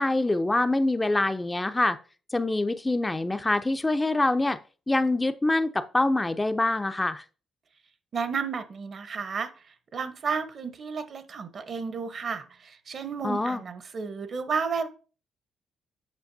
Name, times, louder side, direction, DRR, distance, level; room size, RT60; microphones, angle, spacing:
voice 1, 0.0-2.0 2.3-4.6 4.9-7.2 13.2-13.6, left 2 dB, 15° left, 9 dB, 0.4 m, -25 dB
voice 2, 8.1-9.5 9.9-14.9, right 5 dB, 50° right, 11 dB, 0.8 m, -32 dB
8.2 x 5.7 x 2.6 m, 0.36 s
cardioid pair, 90°, 0 cm